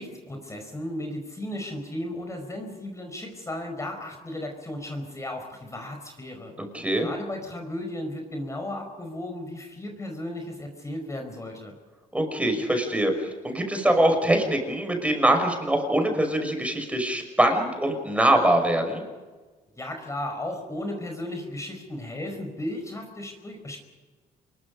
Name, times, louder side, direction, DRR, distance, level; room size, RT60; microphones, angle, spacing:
voice 1, 0.0-6.5 7.0-11.7 19.7-23.8, left 1 dB, 20° left, 3 dB, 4.8 m, -35 dB
voice 2, 6.6-7.1 12.1-19.0, right 1 dB, 10° right, 5 dB, 6.0 m, -23 dB
27.5 x 23.0 x 5.3 m, 1.3 s
cardioid pair, 110°, 17 cm